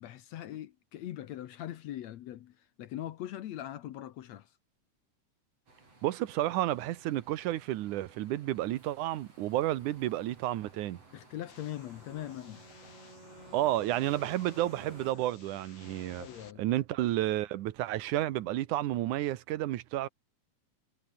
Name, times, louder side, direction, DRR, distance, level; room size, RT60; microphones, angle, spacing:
voice 1, 0.0-4.5 11.1-12.7 16.2-16.6, left 12 dB, 70° left, 2.1 m, -41 dB
Bus leaving and passing cars, 5.7-15.1, right 3 dB, 55° right, 8.9 m, -58 dB
voice 2, 6.0-11.0 13.5-16.3 16.6-20.1, right 14 dB, 80° right, 2.5 m, -31 dB
sound 1, 11.5-16.5, left 5 dB, 40° left, 3.1 m, -56 dB
Wind instrument woodwind instrument, 12.0-16.0, right 1 dB, 15° right, 4.2 m, -53 dB
omnidirectional pair, 3.5 m